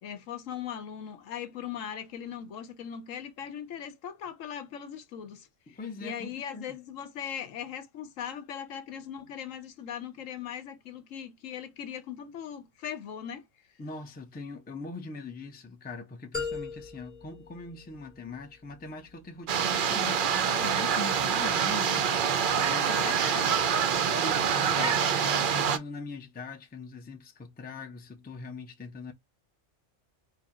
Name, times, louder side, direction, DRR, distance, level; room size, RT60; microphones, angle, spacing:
voice 1, 0.0-5.5 6.0-13.4 22.8-23.6 24.8-25.0, left 9 dB, 75° left, 1.1 m, -39 dB
voice 2, 5.7-6.8 13.8-23.1 24.1-24.9 25.2-29.1, left 3 dB, 15° left, 0.4 m, -42 dB
sound 1, 16.3-18.4, left 4 dB, 30° left, 2.2 m, -38 dB
sound 2, 19.5-25.8, right 7 dB, 60° right, 0.5 m, -26 dB
4.8 x 2.2 x 2.9 m
omnidirectional pair, 1.3 m